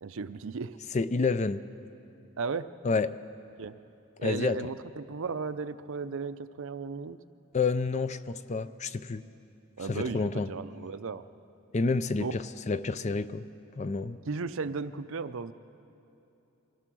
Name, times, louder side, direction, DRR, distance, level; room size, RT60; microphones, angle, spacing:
voice 1, 0.0-0.8 2.4-2.7 3.6-3.7 4.2-7.2 9.8-11.2 12.2-12.4 14.3-15.5, right 4 dB, 60° right, 13 dB, 0.5 m, -35 dB
voice 2, 0.9-1.6 2.8-3.1 4.2-4.6 7.5-9.2 9.9-10.5 11.7-12.4 12.7-13.4 13.8-14.2, left 4 dB, 30° left, 14 dB, 0.4 m, -29 dB
24.5 x 17.0 x 6.2 m, 2.9 s
head